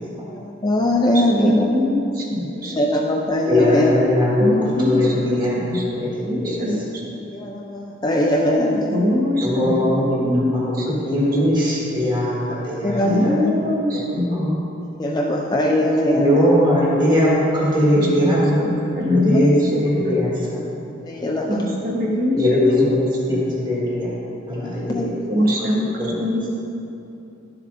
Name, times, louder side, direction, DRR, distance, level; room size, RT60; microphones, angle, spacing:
voice 1, 0.3-1.7 2.8-3.9 7.3-8.9 12.8-13.5 15.0-16.5 21.1-21.6 24.6-25.0, left 1 dB, 20° left, -1 dB, 0.4 m, -21 dB
voice 2, 1.1-2.7 4.4-6.8 8.9-11.0 13.0-14.5 17.9-20.2 21.5-22.9 23.3-23.5 25.3-25.9 26.2-26.5, left 1 dB, 45° right, -2 dB, 1.2 m, -23 dB
voice 3, 3.4-4.5 4.8-6.6 9.4-10.8 11.0-12.4 12.6-13.3 16.1-18.6 19.1-20.3 22.3-24.1 24.5-25.1 26.0-26.2, left 1 dB, 20° right, -7 dB, 1.6 m, -20 dB
11.5 x 7.4 x 2.6 m, 2.8 s
head